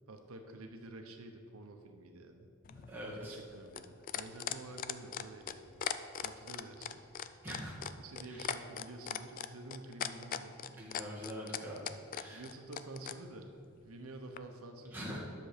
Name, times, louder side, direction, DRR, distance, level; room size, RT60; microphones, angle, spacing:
voice 1, 0.1-2.5 3.1-5.8 6.2-7.0 8.0-10.6 12.3-13.5 13.8-15.2, right 2 dB, 90° right, 5 dB, 0.8 m, -49 dB
sound 1, 2.6-13.2 14.4-14.5, left 9 dB, 40° left, 0.4 m, -39 dB
voice 2, 2.9-3.4 7.4-7.8 8.3-8.4 10.6-11.9 12.1-12.4 14.9-15.2, equal, 10° right, -5 dB, 2.0 m, -43 dB
10.5 x 6.9 x 5.0 m, 2.3 s
head